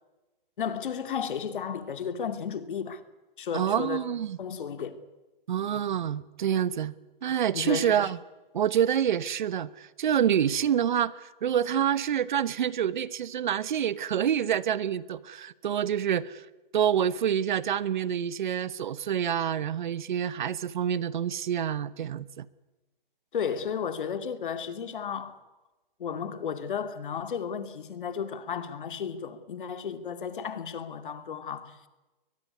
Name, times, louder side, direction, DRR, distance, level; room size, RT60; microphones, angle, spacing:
voice 1, 0.6-3.0 3.4-4.1 4.4-5.0 7.5-8.1 23.3-25.4 26.0-31.9, left 7 dB, 60° left, 2.5 m, -33 dB
voice 2, 3.5-4.4 5.5-6.9 7.2-8.2 8.5-16.4 16.7-22.5, right 9 dB, 55° right, 1.1 m, -27 dB
22.5 x 21.0 x 9.6 m
hypercardioid pair, 155°, 29 cm